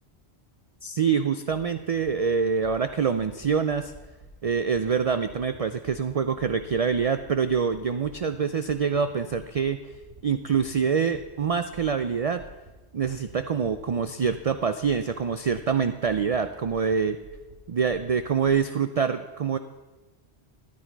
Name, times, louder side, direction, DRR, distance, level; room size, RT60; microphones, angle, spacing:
voice 1, 0.8-3.9 4.4-9.8 10.2-12.4 12.9-17.2 17.7-19.6, right 6 dB, 55° right, 10 dB, 0.4 m, -25 dB
sound 1, 2.1-5.6 5.8-9.0 9.3-9.6 9.9-10.2 10.5-10.8 11.1-11.5 11.7-12.1 12.3-12.7 13.0-13.3 13.6-14.0 14.2-14.5 14.8-15.1 15.4-16.4 16.6-17.0 17.2-17.5 17.8-18.5, right 3 dB, 70° right, 3.5 m, -49 dB
13.5 x 10.0 x 4.6 m, 1.2 s
omnidirectional pair, 1.1 m